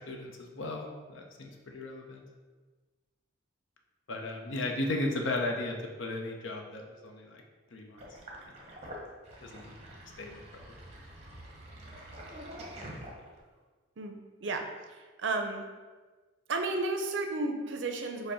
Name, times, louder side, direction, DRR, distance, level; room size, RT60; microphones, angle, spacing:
voice 1, 0.1-2.2 4.1-7.4 7.7-8.0 9.4-9.7 10.2-10.7, left 2 dB, 70° left, 2 dB, 0.6 m, -36 dB
Sink (filling or washing), 8.0-13.6, right 1 dB, 30° right, 0.7 m, -46 dB
voice 2, 14.0-15.6 16.5-18.3, right 3 dB, 65° right, 5 dB, 0.5 m, -33 dB
4.9 x 2.1 x 4.8 m, 1.3 s
head